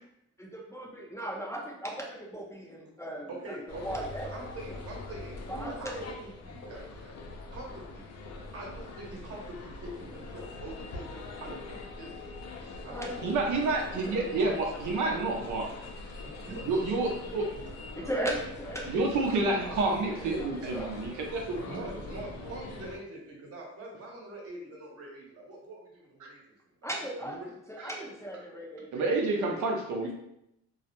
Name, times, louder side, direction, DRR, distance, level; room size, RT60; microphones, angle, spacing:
voice 1, 0.4-4.3 5.5-6.2 12.9-14.8 17.9-20.9 26.8-27.4 27.7-29.5 30.0-30.1, right 1 dB, 10° left, -3 dB, 0.5 m, -38 dB
voice 2, 3.3-7.1 7.5-8.1 8.5-11.0 11.4-12.1 12.8-13.1 16.2-16.6 21.3-26.4 26.8-26.9 27.2-27.5, right 2 dB, 50° right, -2 dB, 0.9 m, -44 dB
sound 1, 3.7-23.0, left 3 dB, 60° left, 0.5 m, -43 dB
voice 3, 13.2-15.7 16.7-17.5 18.9-21.6 27.8-27.9 28.9-30.1, right 3 dB, 75° right, 0 dB, 0.6 m, -29 dB
2.3 x 2.0 x 2.9 m, 0.80 s
cardioid pair, 90°, 30 cm